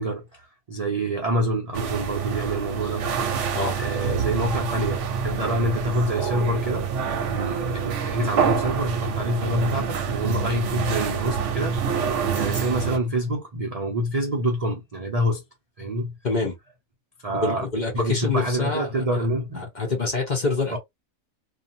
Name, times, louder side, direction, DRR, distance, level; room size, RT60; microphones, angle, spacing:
voice 1, 0.0-3.1 3.8-6.9 7.3-15.4 15.8-16.1 17.2-17.6 17.9-19.7 20.7-20.8, equal, 50° right, 0.4 m, -27 dB
sound 1, 1.7-13.0, right 6 dB, 65° right, 0.9 m, -26 dB
voice 2, 16.2-16.6 17.4-18.9 19.1-19.2 19.5-20.8, left 3 dB, 40° left, 0.8 m, -26 dB
2.8 x 2.3 x 2.6 m
omnidirectional pair, 1.5 m